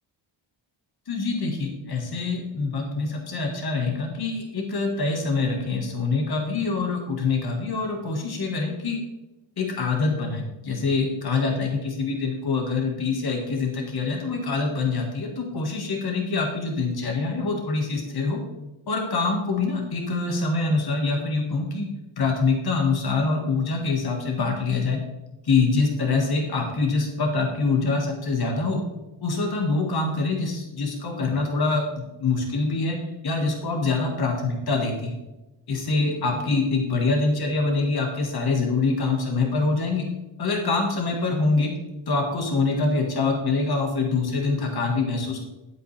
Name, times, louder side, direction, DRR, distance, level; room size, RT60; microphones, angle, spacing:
voice 1, 1.1-9.0 9.6-18.4 18.9-21.9 22.2-25.0 25.4-28.8 29.2-33.0 33.2-35.2 35.7-40.1 40.4-41.7 42.1-45.4, left 3 dB, 50° left, 1 dB, 1.7 m, -25 dB
11.5 x 8.0 x 3.3 m, 1.0 s
wide cardioid pair, 125°, 49 cm